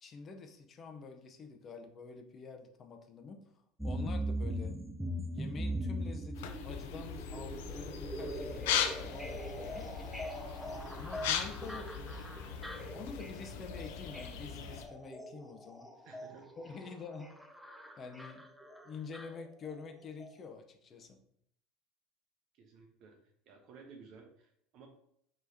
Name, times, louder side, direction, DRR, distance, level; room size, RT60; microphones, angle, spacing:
voice 1, 0.0-3.4 3.8-4.7 5.3-9.9 10.9-12.1 12.8-15.9 16.6-17.3 18.0-18.4 18.8-21.2, left 5 dB, 35° left, 5 dB, 0.7 m, -47 dB
sound 1, 3.8-19.9 20.2-20.3, right 1 dB, 5° right, 0.5 m, -41 dB
sound 2, 6.3-14.9, left 8 dB, 80° left, 0.5 m, -39 dB
voice 2, 16.0-16.5 22.5-23.2 23.5-24.9, right 5 dB, 55° right, 3 dB, 0.8 m, -55 dB
4.7 x 3.1 x 2.8 m, 0.70 s
supercardioid pair, 100°, 0 cm